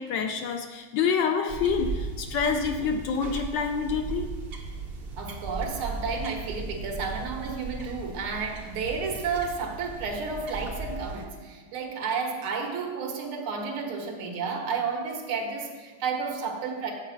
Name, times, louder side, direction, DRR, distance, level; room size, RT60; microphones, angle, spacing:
voice 1, 0.0-4.3, left 6 dB, 75° left, 6 dB, 1.1 m, -27 dB
sound 1, 1.5-11.3, right 3 dB, 65° right, 0.6 m, -37 dB
voice 2, 5.2-16.9, right 5 dB, 90° right, 2 dB, 2.0 m, -31 dB
8.0 x 5.0 x 7.0 m, 1.4 s
omnidirectional pair, 2.3 m